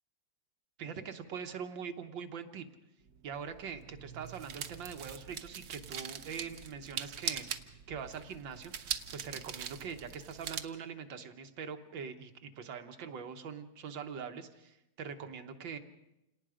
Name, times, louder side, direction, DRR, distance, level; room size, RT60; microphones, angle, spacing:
voice 1, 0.8-2.7 3.2-15.8, right 6 dB, 90° right, 7 dB, 1.9 m, -43 dB
sound 1, 3.1-10.6, right 8 dB, 60° right, 1.3 m, -42 dB
28.0 x 18.5 x 5.0 m, 0.91 s
omnidirectional pair, 2.0 m